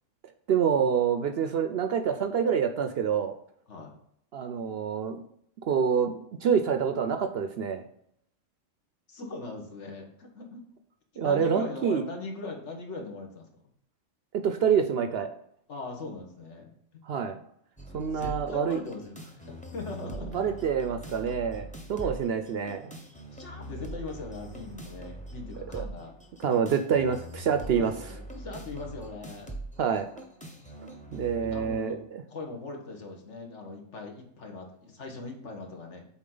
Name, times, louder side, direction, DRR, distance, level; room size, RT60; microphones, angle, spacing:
voice 1, 0.5-3.3 4.3-5.2 5.7-7.8 11.2-12.0 14.3-15.3 17.0-17.4 17.9-18.8 20.3-22.9 25.7-25.8 26.4-27.9 29.8-30.1 31.1-32.2, right 7 dB, 65° right, 7 dB, 0.7 m, -27 dB
voice 2, 9.1-10.6 11.2-13.6 15.7-16.7 17.9-20.4 23.3-26.1 27.6-29.5 31.4-36.1, left 3 dB, 65° left, 2 dB, 1.6 m, -40 dB
sound 1, 17.8-31.8, right 2 dB, 5° left, 0.7 m, -43 dB
7.1 x 4.3 x 3.8 m, 0.71 s
omnidirectional pair, 1.3 m